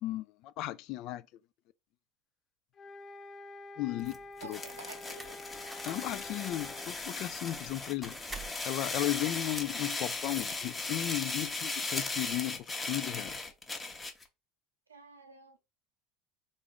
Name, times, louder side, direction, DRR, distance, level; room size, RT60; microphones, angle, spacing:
voice 1, 0.0-1.2 3.8-4.6 5.8-13.4, left 15 dB, 55° left, 0.3 m, -35 dB
sound 1, 2.7-6.9, left 2 dB, 40° left, 1.1 m, -48 dB
sound 2, 3.9-11.2, right 2 dB, 5° right, 0.8 m, -50 dB
sound 3, 4.4-14.2, left 3 dB, 15° left, 0.9 m, -37 dB
voice 2, 4.4-5.4 14.9-15.6, right 4 dB, 85° right, 0.7 m, -50 dB
3.8 x 2.5 x 3.5 m
figure-of-eight pair, 70°, 0 cm